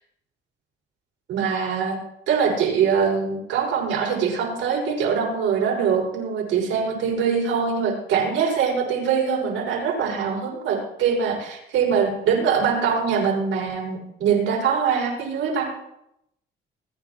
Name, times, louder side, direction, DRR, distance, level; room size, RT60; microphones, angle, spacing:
voice 1, 1.3-2.0 2.3-15.7, right 6 dB, 90° right, -3 dB, 6.2 m, -23 dB
23.5 x 10.0 x 3.1 m, 0.80 s
cardioid pair, 90°, 20 cm